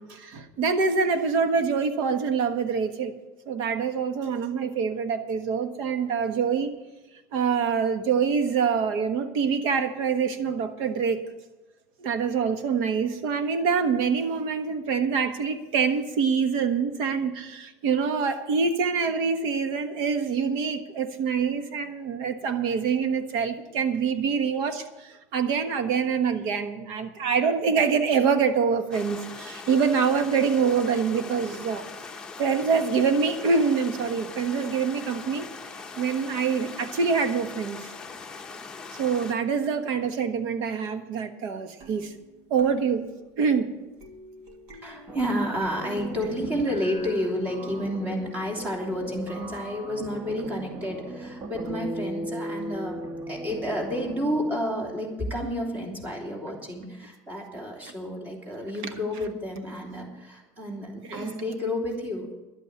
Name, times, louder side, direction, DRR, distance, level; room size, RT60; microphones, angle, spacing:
voice 1, 0.0-3.1 3.5-6.7 7.3-11.2 12.0-31.8 32.4-35.4 36.0-37.9 39.0-42.1 42.5-43.1 43.4-43.7 61.1-61.3, right 6 dB, 65° right, 8 dB, 1.3 m, -25 dB
sound 1, 28.9-39.3, left 4 dB, 10° left, 0.9 m, -41 dB
sound 2, 41.8-47.2, right 2 dB, 80° right, 2.7 m, -48 dB
voice 2, 44.8-62.3, equal, 20° right, 0 dB, 2.9 m, -30 dB
sound 3, 45.1-54.6, right 1 dB, 40° right, 1.7 m, -38 dB
11.5 x 8.5 x 8.0 m, 1.1 s
cardioid pair, 155°, 8 cm